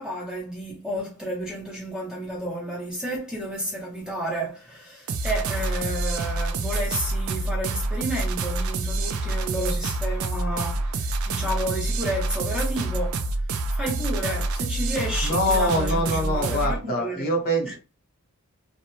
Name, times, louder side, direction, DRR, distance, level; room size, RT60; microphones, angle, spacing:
voice 1, 0.0-13.3 13.5-17.3 17.6-17.8, right 1 dB, 5° right, 0.6 m, -31 dB
sound 1, 5.1-16.8, right 2 dB, 70° right, 0.4 m, -27 dB
voice 2, 15.2-17.8, equal, 40° left, 0.9 m, -24 dB
2.7 x 2.1 x 2.9 m
head